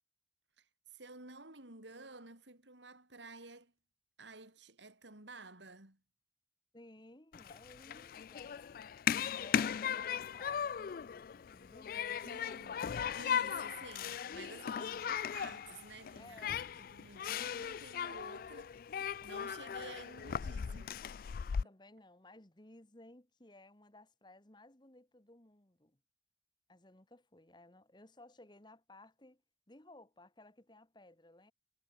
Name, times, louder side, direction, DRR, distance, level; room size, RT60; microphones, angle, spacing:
voice 1, 0.6-3.7 4.2-6.0 12.2-12.8 13.1-18.7 19.2-20.9, right 3 dB, 80° right, 4.9 m, -52 dB
voice 2, 6.7-8.9 9.3-12.9 14.7-14.9 16.2-16.7 21.5-26.0 26.7-29.4 29.7-31.5, left 2 dB, 25° left, 1.5 m, -58 dB
Human group actions, 7.3-21.6, left 8 dB, 50° left, 0.3 m, -38 dB
head